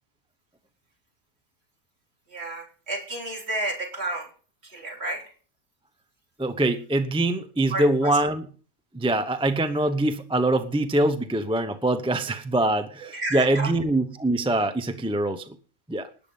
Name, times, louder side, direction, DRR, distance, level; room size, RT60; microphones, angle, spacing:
voice 1, 2.3-4.3 4.6-5.2 7.7-8.2 13.1-13.7, right 2 dB, 45° right, 2 dB, 4.0 m, -31 dB
voice 2, 6.4-8.5 8.9-15.4 15.9-16.1, right 1 dB, 5° right, 10 dB, 0.6 m, -24 dB
19.5 x 8.7 x 5.5 m, 0.41 s
omnidirectional pair, 1.5 m